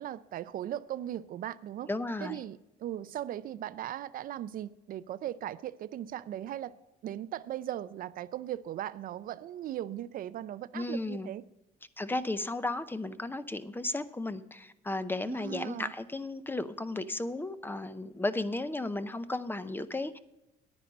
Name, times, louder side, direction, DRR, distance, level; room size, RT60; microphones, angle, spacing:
voice 1, 0.0-1.9 2.2-6.7 7.0-11.4 15.3-15.9, right 12 dB, 55° right, 0.5 m, -38 dB
voice 2, 1.9-2.4 10.7-11.3 12.0-20.2, left 2 dB, 10° left, 0.6 m, -34 dB
10.0 x 9.8 x 5.3 m
cardioid pair, 110°, 17 cm